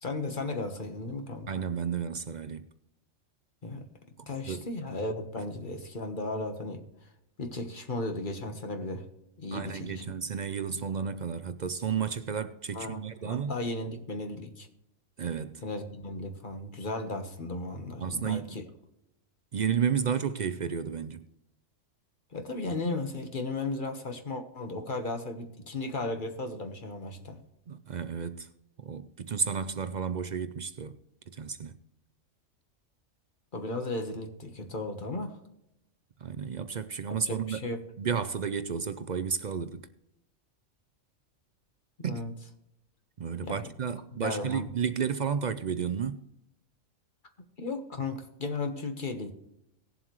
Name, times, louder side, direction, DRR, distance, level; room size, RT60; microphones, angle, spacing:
voice 1, 0.0-1.5 3.6-3.9 4.3-6.8 7.4-9.1 9.4-10.0 12.7-13.0 13.2-14.7 15.6-18.6 22.3-27.4 33.5-35.4 37.2-37.8 42.0-42.3 43.4-43.6 44.1-44.7 47.6-49.3, left 2 dB, 40° left, 1.4 m, -35 dB
voice 2, 1.5-2.7 4.2-4.7 9.5-13.5 15.2-15.6 18.0-18.6 19.5-21.3 27.7-28.5 28.8-31.0 31.3-31.8 36.2-37.6 38.0-39.8 42.0-42.3 43.2-46.3, right 7 dB, 55° right, 0.5 m, -32 dB
19.0 x 7.4 x 3.1 m
omnidirectional pair, 1.3 m